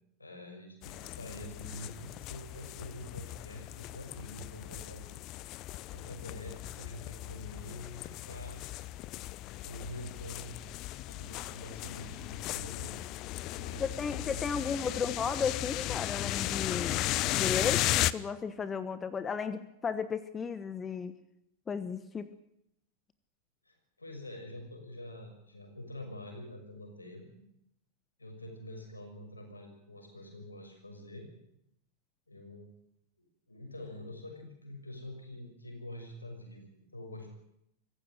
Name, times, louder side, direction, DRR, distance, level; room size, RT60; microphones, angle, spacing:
voice 1, 0.2-5.1 5.9-8.6 9.6-10.6 11.0-13.0 13.5-15.1 23.7-27.4 28.2-31.3 32.3-32.7 33.2-36.6 36.9-37.3, left 1 dB, 80° left, 4 dB, 6.2 m, -46 dB
sound 1, 0.8-18.1, left 16 dB, 40° left, 0.8 m, -36 dB
voice 2, 13.8-21.2 21.7-22.3, left 6 dB, 20° left, 14 dB, 1.2 m, -34 dB
24.5 x 15.0 x 9.2 m, 0.78 s
figure-of-eight pair, 90°, 0 cm